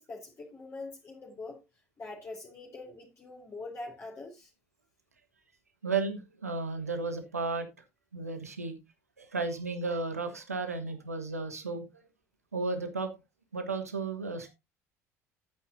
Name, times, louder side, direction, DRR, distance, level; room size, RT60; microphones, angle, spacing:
voice 1, 0.0-1.6 2.0-4.5, left 3 dB, 30° left, 3.0 m, -43 dB
voice 2, 5.8-7.7 8.1-8.8 9.2-11.8 12.5-13.1 13.5-14.5, right 4 dB, 85° right, 1.5 m, -33 dB
12.0 x 8.6 x 2.7 m
figure-of-eight pair, 60°, 8 cm